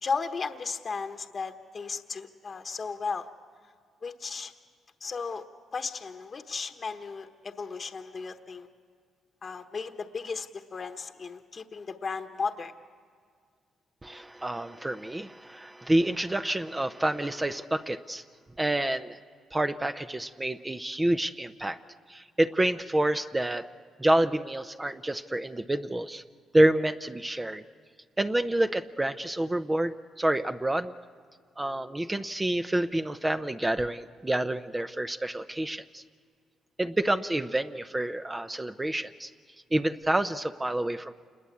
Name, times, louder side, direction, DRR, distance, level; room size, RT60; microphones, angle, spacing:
voice 1, 0.0-3.3 4.0-4.5 5.0-5.4 5.7-8.7 9.4-12.7, left 5 dB, 40° left, 6 dB, 1.2 m, -35 dB
voice 2, 14.0-18.2 18.6-19.2 19.5-21.8 22.1-23.7 24.0-26.2 26.5-27.6 28.2-30.9 31.6-36.0 36.8-39.3 39.7-41.1, right 1 dB, 15° right, 9 dB, 0.6 m, -28 dB
28.0 x 20.5 x 8.5 m, 2.1 s
cardioid pair, 90°, 0 cm